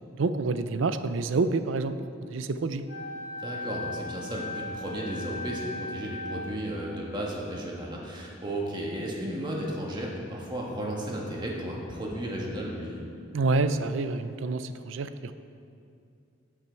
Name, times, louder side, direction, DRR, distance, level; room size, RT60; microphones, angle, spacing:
voice 1, 0.1-2.0 2.3-2.8 13.3-15.3, right 3 dB, 75° right, 11 dB, 0.5 m, -27 dB
Wind instrument woodwind instrument, 2.9-6.7, left 2 dB, 55° left, 2.0 m, -37 dB
voice 2, 3.4-13.0, right 1 dB, 25° right, -3 dB, 1.6 m, -34 dB
15.0 x 5.9 x 4.5 m, 2.5 s
head